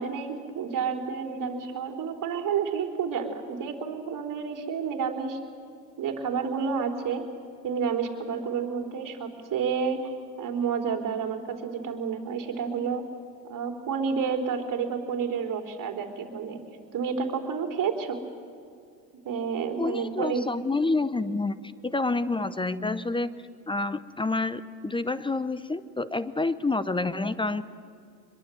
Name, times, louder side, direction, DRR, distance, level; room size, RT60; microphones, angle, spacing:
voice 1, 0.0-5.4 6.0-7.2 7.6-10.1 10.4-13.0 13.4-16.6 16.9-18.2 19.2-20.5, right 6 dB, 40° right, 5 dB, 3.6 m, -30 dB
voice 2, 19.8-23.3 23.7-27.6, left 3 dB, 10° left, 15 dB, 0.8 m, -28 dB
25.0 x 22.0 x 7.8 m, 2.4 s
hypercardioid pair, 80°, 49 cm